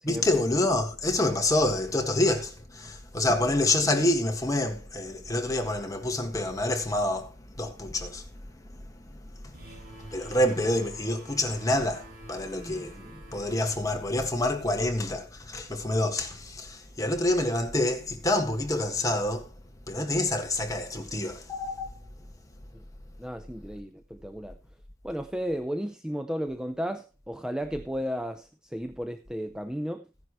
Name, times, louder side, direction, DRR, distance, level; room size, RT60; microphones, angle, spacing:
voice 1, 0.0-8.2 9.4-9.5 10.1-12.9 13.3-19.5 19.9-22.0, left 1 dB, 15° left, 1.7 m, -27 dB
sound 1, 9.5-14.9, right 1 dB, 45° right, 5.8 m, -47 dB
voice 2, 12.5-13.3 22.7-22.8 23.2-24.6 25.0-30.1, equal, 5° right, 0.6 m, -34 dB
15.0 x 10.5 x 3.1 m
head